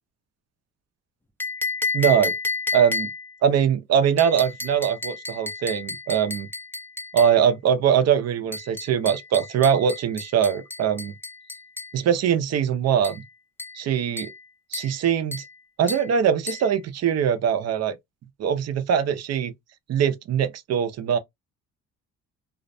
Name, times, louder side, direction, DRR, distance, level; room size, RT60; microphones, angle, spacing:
sound 1, 1.4-3.4 4.2-7.4 8.5-12.0 13.0-13.3 13.6-13.8 14.2-14.4 14.7-15.0 15.3-15.5 15.9-16.1 16.5-16.7, left 3 dB, 5° left, 0.4 m, -32 dB
voice 1, 1.9-2.3 2.7-3.1 3.4-6.5 7.1-11.1 11.9-13.2 13.7-14.3 14.7-15.4 15.8-18.0 18.4-19.5 19.9-21.2, right 8 dB, 60° right, 0.6 m, -22 dB
2.4 x 2.1 x 2.5 m
cardioid pair, 90°, 30 cm